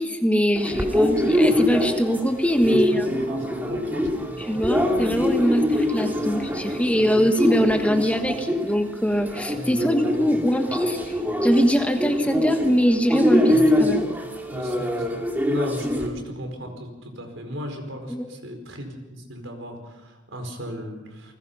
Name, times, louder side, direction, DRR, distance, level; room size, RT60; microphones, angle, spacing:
voice 1, 0.0-3.1 4.4-14.0 15.8-16.0 18.1-18.3, equal, 5° left, 5 dB, 1.3 m, -23 dB
sound 1, 0.6-16.1, left 1 dB, 10° right, 2.7 m, -24 dB
voice 2, 2.7-4.6 7.2-7.6 9.6-10.3 13.5-13.9 14.5-15.2 15.5-21.3, equal, 75° right, 4 dB, 4.8 m, -36 dB
29.0 x 20.5 x 5.6 m, 1.1 s
head